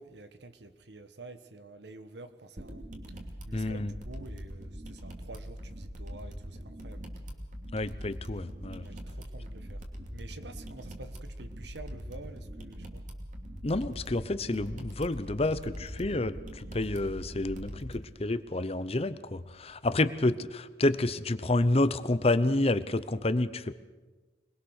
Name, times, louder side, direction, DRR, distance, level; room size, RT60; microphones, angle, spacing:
voice 1, 0.0-3.2 3.4-7.0 8.8-9.8 10.1-13.1, right 2 dB, 75° right, 10 dB, 1.4 m, -49 dB
sound 1, 2.6-18.0, equal, 45° right, 2.7 m, -42 dB
voice 2, 3.5-3.9 7.7-8.9 13.6-23.7, left 2 dB, 35° left, 13 dB, 0.8 m, -29 dB
25.5 x 20.5 x 6.5 m, 1.3 s
head